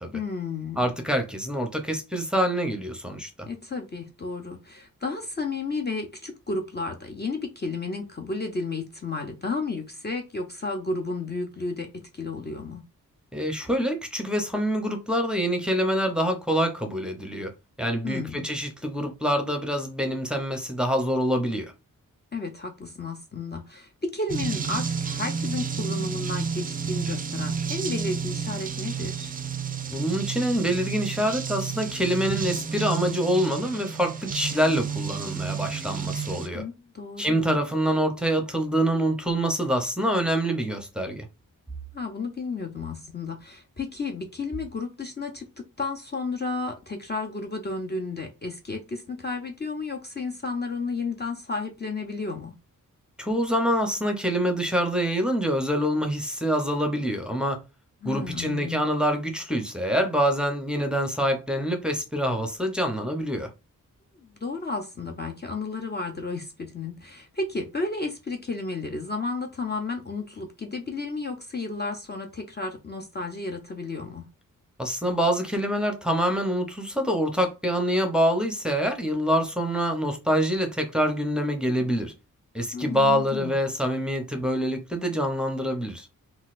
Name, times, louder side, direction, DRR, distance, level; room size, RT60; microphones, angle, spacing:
voice 1, 0.1-0.9 3.5-11.9 12.1-12.8 18.0-18.5 22.3-29.3 36.5-37.5 41.9-52.5 58.0-58.8 64.2-74.2 82.7-83.5, left 3 dB, 30° left, 0.6 m, -32 dB
voice 2, 0.8-3.5 13.3-17.5 17.8-21.7 29.9-36.6 37.2-41.3 53.2-57.6 58.0-63.5 74.8-82.1 82.5-86.1, equal, 5° right, 0.7 m, -26 dB
sound 1, 24.3-36.5, right 6 dB, 25° right, 0.4 m, -31 dB
3.9 x 2.4 x 2.5 m
cardioid pair, 85°, 33 cm